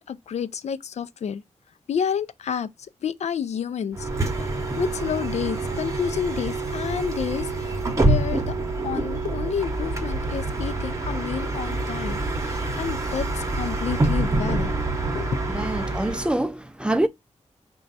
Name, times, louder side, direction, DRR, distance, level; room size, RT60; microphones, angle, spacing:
voice 1, 0.0-1.4 1.9-2.7 3.0-8.5 8.8-14.7 15.1-15.4, left 7 dB, 70° left, 0.4 m, -30 dB
Bus, 3.9-16.4, right 2 dB, 25° right, 0.8 m, -26 dB
voice 2, 15.5-17.1, right 1 dB, 10° right, 0.3 m, -25 dB
5.1 x 2.3 x 3.9 m
wide cardioid pair, 170°, 12 cm